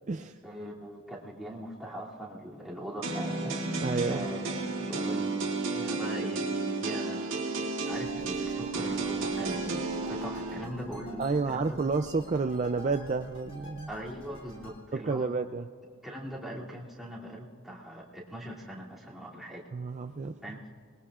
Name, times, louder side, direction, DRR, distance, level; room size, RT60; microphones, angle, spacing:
voice 1, 0.4-3.6 4.1-5.3 5.7-7.2 7.8-11.8 13.9-15.3 16.0-19.6 20.4-20.7, equal, ahead, -7 dB, 2.7 m, -41 dB
sound 1, 3.0-10.6, right 3 dB, 60° right, 2.3 m, -32 dB
voice 2, 3.8-4.3 11.2-13.9 14.9-15.7 19.7-20.4, right 4 dB, 35° right, 7 dB, 0.4 m, -30 dB
sound 2, 7.9-14.8, left 1 dB, 30° left, 3.0 m, -46 dB
27.0 x 21.0 x 2.4 m, 2.2 s
head